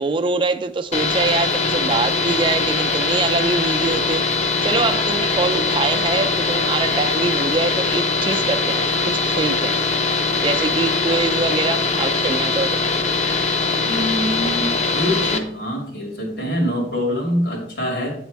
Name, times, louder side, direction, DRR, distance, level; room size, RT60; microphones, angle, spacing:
voice 1, 0.0-9.8 10.4-12.8, right 3 dB, 30° right, 0.4 m, -24 dB
sound 1, 0.9-15.4, left 3 dB, 40° left, 0.6 m, -21 dB
voice 2, 13.8-18.1, equal, 85° left, 2.6 m, -24 dB
8.1 x 4.1 x 4.5 m
head